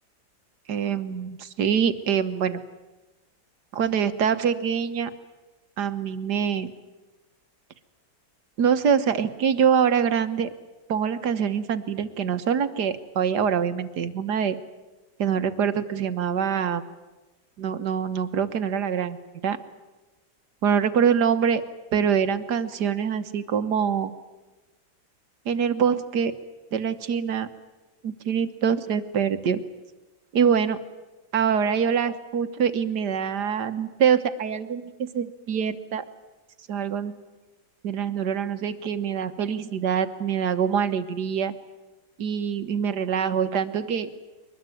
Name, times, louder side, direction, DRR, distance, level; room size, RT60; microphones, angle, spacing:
voice 1, 0.7-2.6 3.7-5.1 5.8-6.7 8.6-10.5 10.9-14.6 15.2-16.8 17.6-19.2 19.4-19.6 20.6-21.6 21.9-24.1 25.4-26.3 26.7-27.5 28.0-29.6 30.3-30.8 31.3-36.0 36.7-37.1 37.8-41.5 42.2-44.1, right 7 dB, 70° right, 10 dB, 1.7 m, -24 dB
23.0 x 20.5 x 9.2 m, 1.1 s
omnidirectional pair, 1.9 m